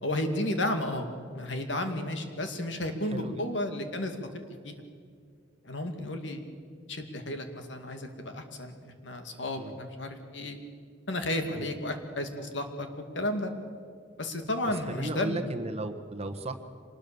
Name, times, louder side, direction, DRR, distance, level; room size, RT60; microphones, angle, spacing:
voice 1, 0.0-1.1 1.3-4.2 4.6-4.8 5.6-6.4 6.9-10.6 11.1-12.9 13.1-13.5 14.2-15.4, left 1 dB, 70° left, 6 dB, 2.4 m, -32 dB
voice 2, 3.1-3.4 9.6-9.8 11.5-11.7 14.6-16.6, right 2 dB, 35° right, 8 dB, 1.3 m, -35 dB
24.5 x 20.0 x 7.0 m, 2.1 s
head